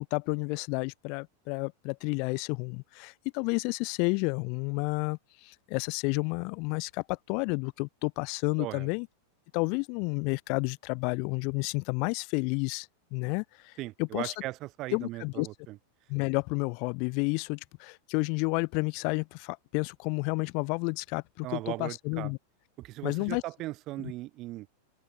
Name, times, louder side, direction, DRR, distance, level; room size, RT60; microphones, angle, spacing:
voice 1, 0.0-9.1 9.5-14.3 14.9-15.5 16.1-22.4 23.0-23.4 24.0-24.1, left 34 dB, 45° left, 1.5 m, -31 dB
voice 2, 13.8-15.8 21.4-22.3 22.8-24.7, right 17 dB, 35° right, 4.1 m, -38 dB
open air
figure-of-eight pair, 90°, 0 cm